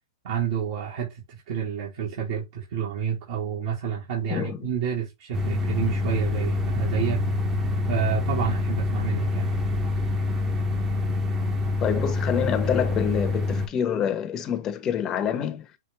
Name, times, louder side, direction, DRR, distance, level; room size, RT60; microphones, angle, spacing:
voice 1, 0.2-7.2 7.9-9.5, right 8 dB, 60° right, 1.9 m, -29 dB
voice 2, 4.3-4.7 11.8-15.6, left 8 dB, 25° left, 0.9 m, -27 dB
sound 1, 5.3-13.7, left 2 dB, 20° right, 0.9 m, -26 dB
5.9 x 2.7 x 3.3 m
hypercardioid pair, 145°, 2 cm